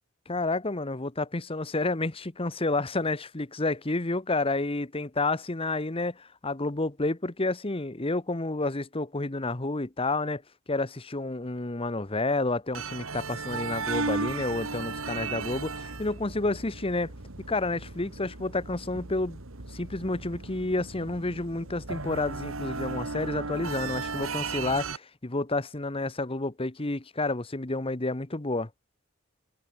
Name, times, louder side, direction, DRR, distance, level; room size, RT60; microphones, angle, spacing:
voice 1, 0.3-10.4 10.7-17.1 17.5-19.4 19.7-28.7, left 2 dB, 25° left, 1.2 m, -30 dB
sound 1, 12.7-25.0, right 4 dB, 85° right, 2.3 m, -36 dB
head